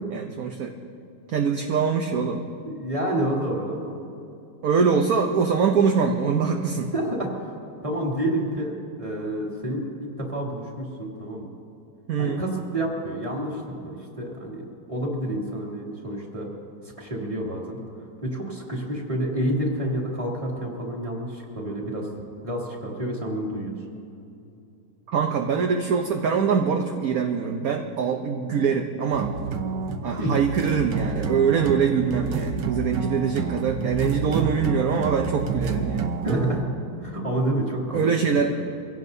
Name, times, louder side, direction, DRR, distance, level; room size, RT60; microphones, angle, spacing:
voice 1, 0.1-0.7 1.3-2.4 4.6-6.9 12.1-12.5 25.1-29.3 30.0-36.1 37.9-38.6, right 6 dB, 60° right, 3 dB, 1.2 m, -23 dB
voice 2, 2.6-4.0 6.9-7.5 7.8-11.5 12.2-16.5 17.0-17.8 18.2-22.1 22.4-23.7 30.2-30.4 36.2-36.6 37.0-38.1 38.3-38.6, right 1 dB, 20° right, -3 dB, 2.6 m, -29 dB
sound 1, 29.1-36.6, right 5 dB, 80° right, 1.5 m, -28 dB
24.5 x 17.0 x 2.7 m, 2.6 s
omnidirectional pair, 1.9 m